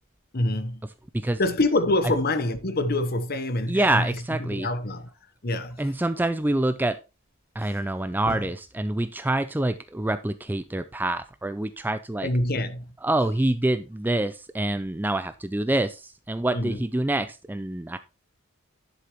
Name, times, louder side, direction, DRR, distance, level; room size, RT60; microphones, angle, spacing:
voice 1, 0.3-0.8 1.4-4.1 4.4-5.1 5.4-5.8 7.6-7.7 8.3-8.4 12.2-12.9 16.5-16.8, left 2 dB, 45° left, 1.0 m, -26 dB
voice 2, 3.7-4.7 5.8-7.0 7.6-12.3 13.0-18.0, right 1 dB, 10° right, 0.3 m, -26 dB
11.0 x 6.7 x 3.0 m
head